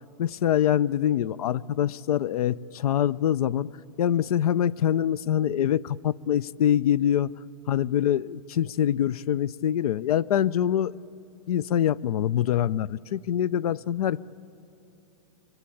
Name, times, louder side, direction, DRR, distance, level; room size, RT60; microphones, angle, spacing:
voice 1, 0.2-3.7 4.0-7.3 7.7-10.9 11.5-14.2, left 10 dB, 70° left, 22 dB, 0.6 m, -24 dB
27.0 x 23.0 x 8.5 m, 2.9 s
hypercardioid pair, 155°, 19 cm